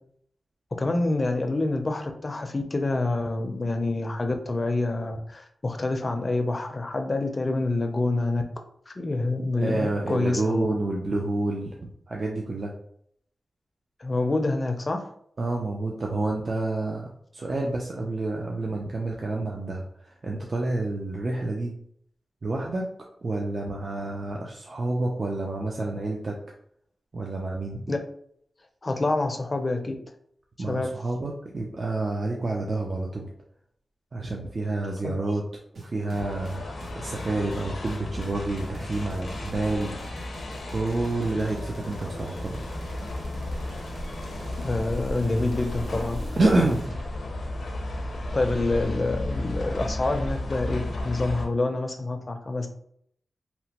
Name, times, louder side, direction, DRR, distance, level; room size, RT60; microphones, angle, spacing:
voice 1, 0.8-8.4 8.9-10.7 14.0-15.1 27.9-28.0 28.8-29.9 30.6-30.9 35.0-35.2 44.6-46.2 48.3-52.7, left 2 dB, 35° left, 5 dB, 0.4 m, -27 dB
voice 2, 9.6-12.7 15.4-21.7 22.4-22.9 23.2-26.4 27.1-27.8 30.6-33.3 34.1-35.4 35.8-36.6 36.9-40.0 40.7-42.6 46.4-46.9, right 2 dB, 45° right, -1 dB, 0.4 m, -28 dB
sound 1, 35.7-47.0, right 2 dB, 75° right, 0.8 m, -44 dB
sound 2, 36.1-51.5, left 1 dB, 80° left, 0.6 m, -33 dB
2.9 x 2.1 x 2.9 m, 0.67 s
wide cardioid pair, 90°, 0 cm